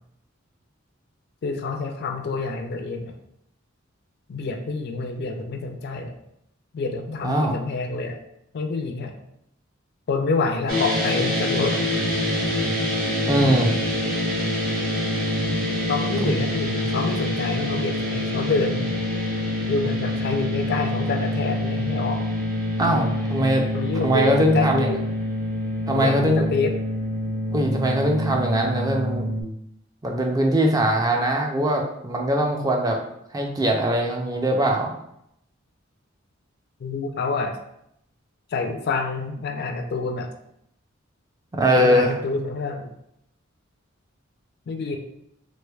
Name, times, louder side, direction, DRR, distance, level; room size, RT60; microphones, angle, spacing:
voice 1, 1.4-3.2 4.3-6.1 6.7-8.2 8.5-9.1 10.1-11.8 15.9-18.9 19.7-22.2 23.7-25.0 25.9-26.7 36.8-37.6 38.5-40.3 41.8-42.9 44.7-45.0, left 3 dB, 55° left, 5 dB, 0.4 m, -27 dB
voice 2, 7.2-7.5 13.3-13.7 16.2-16.3 22.8-23.7 24.0-24.9 25.9-26.4 27.5-29.3 30.0-33.0 33.3-34.9 41.5-42.1, right 1 dB, 20° right, 1 dB, 0.4 m, -21 dB
sound 1, 10.7-29.4, left 1 dB, 45° right, 0.9 m, -26 dB
3.2 x 3.2 x 2.3 m, 0.76 s
head